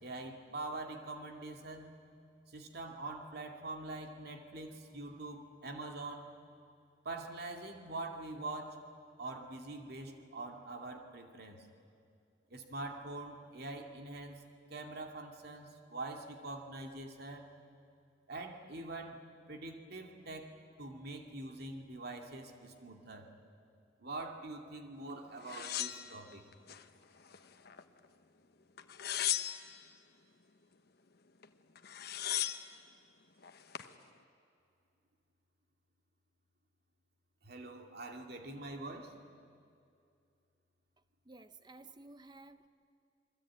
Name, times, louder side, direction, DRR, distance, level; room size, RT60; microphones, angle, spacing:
voice 1, 0.0-2.0 2.5-6.3 7.0-8.8 9.2-11.6 12.5-14.4 14.7-17.5 18.3-19.2 19.5-23.3 24.0-26.4 37.4-39.1, right 2 dB, 55° right, 2.5 m, -44 dB
sound 1, 25.5-26.8 27.3-28.0 28.8-29.9 31.4-31.5 31.7-32.7 33.4-33.9, left 12 dB, 55° left, 1.1 m, -37 dB
voice 2, 41.2-42.7, right 2 dB, 25° right, 0.8 m, -54 dB
27.5 x 22.0 x 8.8 m
head